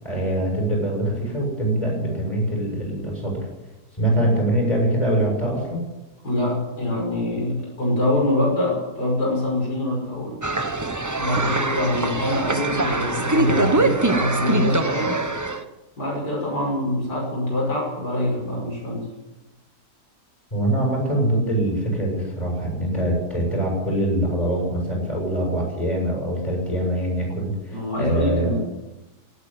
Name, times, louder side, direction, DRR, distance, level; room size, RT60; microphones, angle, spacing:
voice 1, 0.0-3.5 4.0-5.8 20.5-28.5, right 1 dB, 20° left, -2 dB, 7.0 m, -23 dB
voice 2, 6.2-10.4 11.2-15.2 16.0-19.1 27.7-28.6, left 1 dB, 70° left, -2 dB, 6.5 m, -24 dB
sound 1, 10.4-15.6, right 2 dB, 20° right, 0.5 m, -23 dB
17.5 x 9.0 x 9.0 m, 1.1 s
omnidirectional pair, 1.8 m